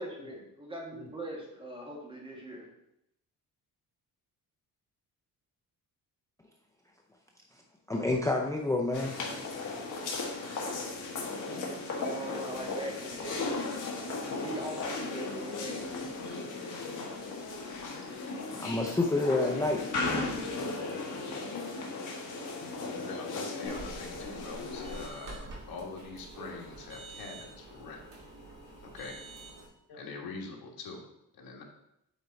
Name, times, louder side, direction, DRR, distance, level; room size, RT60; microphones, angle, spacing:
voice 1, 0.0-2.7 11.8-13.5 14.4-15.9, equal, 15° right, -1 dB, 1.5 m, -41 dB
voice 2, 7.9-9.2 17.6-17.8 18.5-19.9, left 2 dB, 10° left, 1 dB, 0.5 m, -29 dB
sound 1, 8.9-25.1, left 3 dB, 55° left, 1.5 m, -36 dB
voice 3, 22.6-28.0 28.8-29.2 29.9-31.1 31.3-31.6, left 4 dB, 75° left, 0 dB, 1.6 m, -44 dB
sound 2, 23.6-29.7, right 2 dB, 55° right, 2.3 m, -46 dB
8.0 x 4.4 x 4.0 m, 0.80 s
wide cardioid pair, 170°, 36 cm